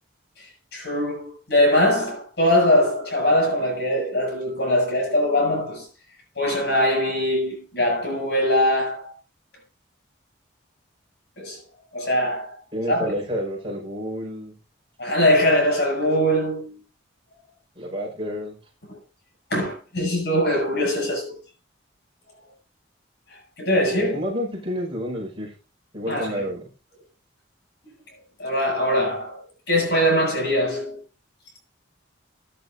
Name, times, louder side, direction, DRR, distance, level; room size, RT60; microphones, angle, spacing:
voice 1, 0.7-5.9 6.4-9.1 11.4-11.6 11.9-12.6 12.9-13.1 15.0-16.8 18.9-19.0 19.5-21.4 23.6-24.2 26.1-26.3 28.4-31.0, left 1 dB, 55° left, 7.9 m, -22 dB
voice 2, 12.7-14.6 17.8-18.6 24.1-25.5 25.9-26.6, equal, 25° right, 5.3 m, -29 dB
16.5 x 10.5 x 2.7 m
head